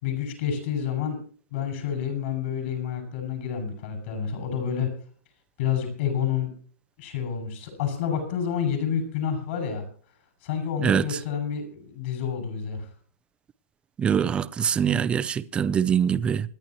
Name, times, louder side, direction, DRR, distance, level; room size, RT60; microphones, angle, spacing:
voice 1, 0.0-1.2 1.5-4.9 5.6-6.5 7.0-9.8 10.4-12.9, left 8 dB, 50° left, 6.5 m, -29 dB
voice 2, 14.0-16.5, right 8 dB, 15° right, 0.5 m, -23 dB
27.5 x 10.5 x 3.0 m
hypercardioid pair, 155°, 8 cm